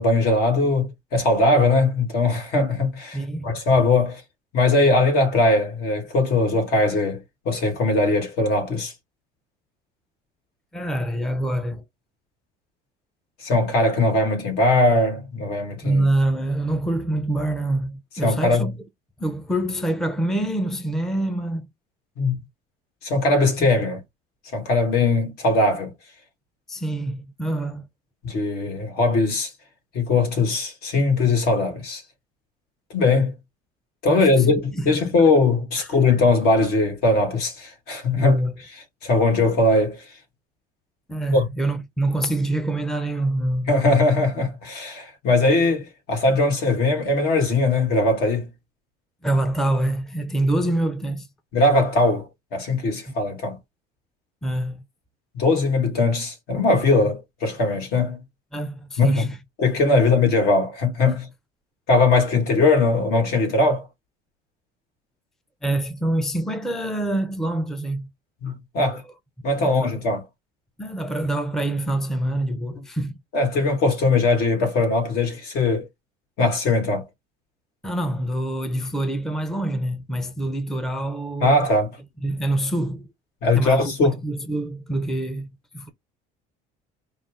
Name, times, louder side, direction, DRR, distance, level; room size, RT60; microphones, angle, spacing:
voice 1, 0.0-4.2 4.5-8.9 13.4-16.1 18.2-18.7 22.2-22.4 23.0-24.0 24.5-25.9 28.2-29.5 29.9-32.0 32.9-33.3 34.0-38.4 39.0-40.0 41.3-41.5 43.7-48.5 51.5-53.6 55.3-58.2 59.0-59.3 59.6-61.3 61.9-63.9 68.4-69.0 69.4-70.2 73.3-75.9 76.4-77.0 81.4-82.0 83.4-84.2, left 2 dB, 65° left, 2.0 m, -20 dB
voice 2, 3.1-3.5 10.7-11.8 15.8-18.7 19.2-21.7 23.6-23.7 26.7-27.9 34.1-35.3 35.8-35.9 38.1-38.6 41.1-43.7 49.2-51.3 53.1-53.2 54.4-54.8 58.5-59.4 65.6-68.1 68.8-69.0 69.6-70.1 70.8-73.1 77.8-81.6 82.2-83.1 83.5-85.5 85.7-85.9, right 1 dB, ahead, 0.5 m, -26 dB
5.3 x 2.4 x 3.6 m
cardioid pair, 135°, 17 cm